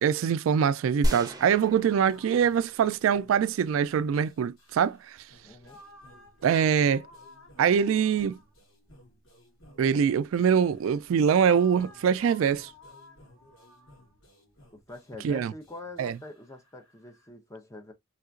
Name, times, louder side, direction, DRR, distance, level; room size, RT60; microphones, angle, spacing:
voice 1, 0.0-5.0 6.4-7.1 7.6-8.4 9.8-12.7 15.2-15.5 16.0-16.1, right 7 dB, 80° right, 0.3 m, -23 dB
sound 1, 1.0-3.3, equal, 20° right, 0.7 m, -32 dB
sound 2, 1.5-17.3, left 2 dB, 90° left, 1.8 m, -55 dB
voice 2, 5.4-5.8 14.7-17.9, left 2 dB, 15° left, 0.7 m, -44 dB
3.3 x 2.8 x 2.4 m
head